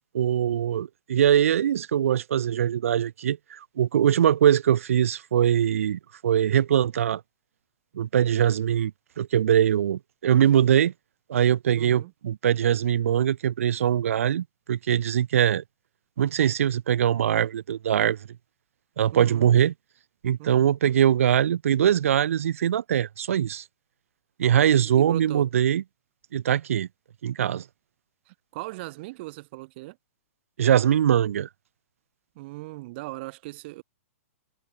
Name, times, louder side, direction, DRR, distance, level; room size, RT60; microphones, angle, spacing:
voice 1, 0.1-7.2 7.9-8.9 9.2-10.9 11.3-15.6 16.2-18.2 19.0-19.7 20.2-23.6 24.4-25.8 26.3-26.9 27.2-27.6 30.6-31.5, right 10 dB, 75° right, 1.1 m, -22 dB
voice 2, 11.8-12.1 19.1-19.5 20.4-20.7 24.7-25.5 28.3-30.0 32.4-33.8, right 21 dB, 50° right, 5.9 m, -38 dB
hypercardioid pair, 125°, 8 cm